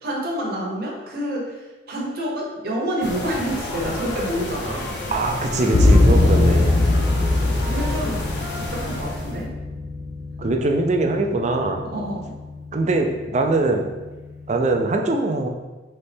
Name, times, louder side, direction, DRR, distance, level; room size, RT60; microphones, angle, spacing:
voice 1, 0.0-1.6 1.9-4.9 7.3-8.2 8.7-9.5 11.9-12.3, equal, 55° right, -3 dB, 0.9 m, -28 dB
sound 1, 3.0-9.4, left 1 dB, 65° left, 0.8 m, -31 dB
voice 2, 5.1-6.9 10.4-11.9 12.7-13.9 14.5-15.5, right 2 dB, 40° right, 3 dB, 0.4 m, -22 dB
sound 2, 5.7-14.8, left 2 dB, 45° left, 0.5 m, -22 dB
4.1 x 3.2 x 3.4 m, 1.2 s
head